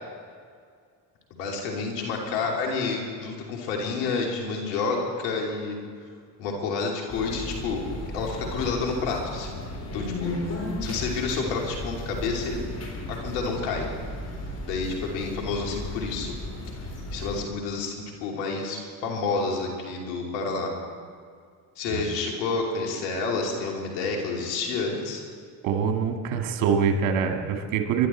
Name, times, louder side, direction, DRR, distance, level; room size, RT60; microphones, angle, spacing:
voice 1, 1.3-5.8 6.4-7.8 8.1-9.6 9.9-10.4 10.8-12.6 13.1-13.9 14.6-16.3 17.1-20.7 21.8-25.2, left 4 dB, 85° left, 0 dB, 3.0 m, -29 dB
sound 1, 7.1-17.4, left 1 dB, 30° left, 4.0 m, -35 dB
voice 2, 25.6-28.1, right 6 dB, 75° right, 4 dB, 2.1 m, -24 dB
23.5 x 11.5 x 4.4 m, 2.1 s
supercardioid pair, 70°, 47 cm